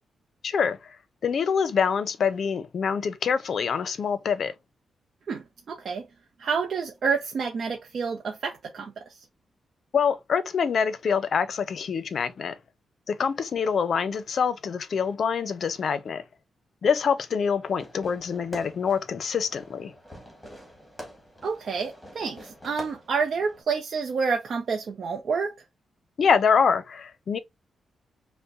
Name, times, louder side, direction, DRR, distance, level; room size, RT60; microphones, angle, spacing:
voice 1, 0.4-0.8 1.2-4.5 9.9-12.6 13.1-16.2 16.8-19.9 26.2-27.4, left 6 dB, 55° left, 0.5 m, -25 dB
voice 2, 5.3-6.0 6.4-9.0 21.4-25.5, right 5 dB, 55° right, 0.6 m, -29 dB
Fireworks, 17.6-23.6, equal, 5° left, 1.4 m, -46 dB
5.3 x 2.1 x 2.5 m
wide cardioid pair, 125°, 0 cm